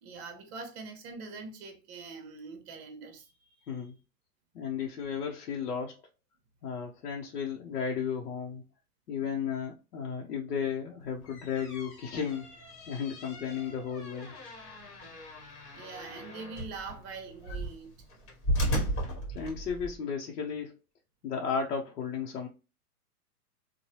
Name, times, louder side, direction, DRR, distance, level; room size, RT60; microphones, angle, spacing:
voice 1, 0.0-3.9 15.7-18.0, right 4 dB, 40° right, 0.9 m, -44 dB
voice 2, 4.5-6.0 6.6-8.6 9.1-12.4 12.9-14.3 19.3-20.7 21.2-22.5, left 6 dB, 85° left, 0.8 m, -34 dB
sound 1, 11.1-20.0, equal, 30° left, 1.1 m, -36 dB
3.0 x 2.2 x 2.8 m
hypercardioid pair, 135°, 46 cm